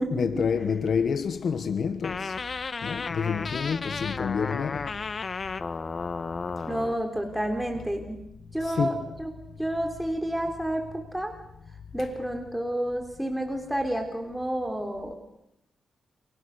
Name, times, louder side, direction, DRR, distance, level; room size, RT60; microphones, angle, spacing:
voice 1, 0.1-2.4 2.8-4.9 8.6-9.0, left 6 dB, 70° left, 1.3 m, -28 dB
sound 1, 2.0-7.0, left 4 dB, 45° left, 1.4 m, -33 dB
voice 2, 6.7-8.2 8.5-9.3 9.6-11.3 11.9-15.1, right 1 dB, 5° right, 3.5 m, -30 dB
29.5 x 29.0 x 6.6 m
cardioid pair, 90°, 0 cm